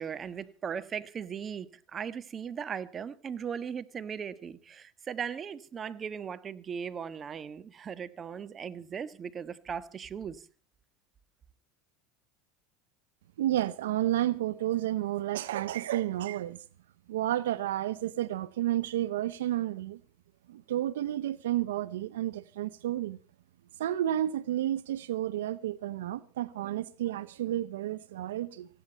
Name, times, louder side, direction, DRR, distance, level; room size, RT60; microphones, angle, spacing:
voice 1, 0.0-10.5, right 7 dB, 30° right, 1.4 m, -38 dB
voice 2, 13.4-16.6 17.1-20.0 20.5-23.2 23.8-28.7, right 13 dB, 85° right, 0.7 m, -31 dB
19.5 x 16.0 x 4.2 m
hypercardioid pair, 95°, 0 cm